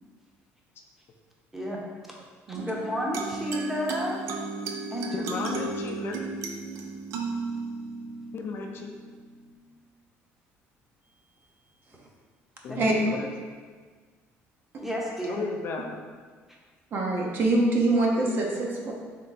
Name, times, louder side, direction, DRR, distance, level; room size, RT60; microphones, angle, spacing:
voice 1, 2.5-4.2 4.9-5.5 12.7-13.0 14.8-15.4, equal, 5° right, -3 dB, 0.8 m, -31 dB
sound 1, 2.5-9.5, right 4 dB, 70° right, 0.5 m, -35 dB
voice 2, 5.1-6.3 8.3-8.9 12.6-13.3 15.3-16.0, left 4 dB, 50° left, 2 dB, 0.5 m, -34 dB
voice 3, 16.9-18.9, right 2 dB, 45° right, -1 dB, 0.8 m, -24 dB
3.7 x 3.2 x 4.0 m, 1.5 s
cardioid pair, 125°, 5 cm